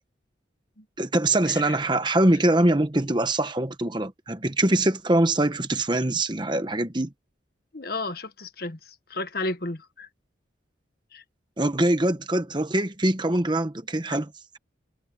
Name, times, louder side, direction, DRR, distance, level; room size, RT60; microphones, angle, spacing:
voice 1, 1.0-7.1 11.6-14.6, right 1 dB, 25° right, 1.1 m, -23 dB
voice 2, 7.7-10.1 11.1-11.2, left 2 dB, 50° left, 1.5 m, -33 dB
head